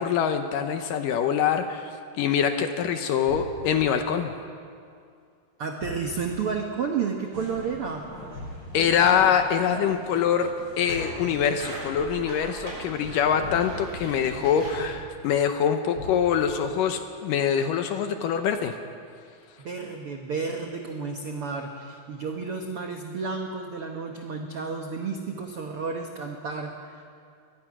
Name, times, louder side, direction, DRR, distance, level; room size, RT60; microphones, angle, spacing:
voice 1, 0.0-1.9 2.2-4.3 8.7-18.8, left 8 dB, 75° left, 7 dB, 2.2 m, -24 dB
sound 1, 3.3-3.9 5.8-6.4 8.3-8.9 10.9-11.5 13.4-14.0 16.0-16.5, left 2 dB, 35° left, 4.6 m, -39 dB
voice 2, 5.6-8.1 19.6-27.0, right 5 dB, 80° right, 3 dB, 1.2 m, -31 dB
sound 2, 7.3-14.8, right 1 dB, 40° right, 7.5 m, -40 dB
24.5 x 19.5 x 6.1 m, 2.3 s
omnidirectional pair, 4.5 m